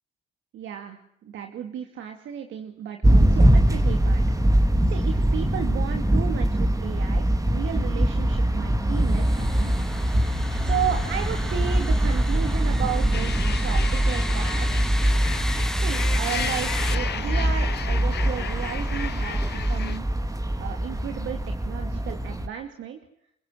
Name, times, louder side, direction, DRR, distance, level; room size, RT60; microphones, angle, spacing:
voice 1, 0.5-4.2 4.9-9.8 10.6-14.7 15.8-20.0 20.6-21.4 21.6-23.0, right 9 dB, 80° right, 4 dB, 2.6 m, -34 dB
sound 1, 3.0-22.5, right 1 dB, 15° right, 3.1 m, -23 dB
sound 2, 9.0-17.0, equal, 5° left, 1.4 m, -36 dB
sound 3, 13.1-20.0, left 9 dB, 55° left, 1.2 m, -35 dB
29.0 x 16.5 x 8.1 m, 0.70 s
cardioid pair, 90°, 20 cm